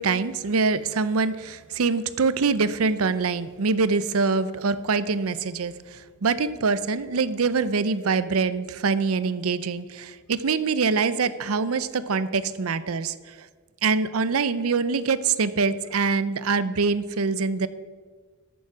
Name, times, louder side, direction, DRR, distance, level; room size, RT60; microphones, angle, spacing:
voice 1, 0.0-13.5 13.8-17.7, right 4 dB, 80° right, 14 dB, 0.6 m, -24 dB
14.0 x 7.2 x 6.1 m, 1.5 s
head